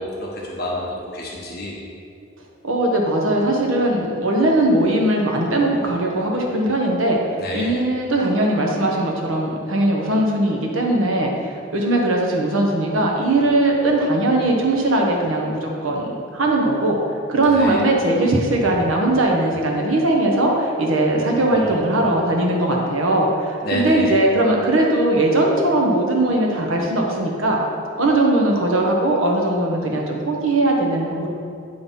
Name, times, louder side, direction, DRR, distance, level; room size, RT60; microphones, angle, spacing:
voice 1, 0.0-1.8 7.4-7.8 17.4-17.8 21.5-21.8 23.6-24.2, equal, 50° left, -4 dB, 1.2 m, -28 dB
voice 2, 2.6-7.2 7.5-17.0 17.3-27.6 28.0-31.3, right 1 dB, 90° right, -1 dB, 1.2 m, -19 dB
9.0 x 4.0 x 5.4 m, 2.5 s
head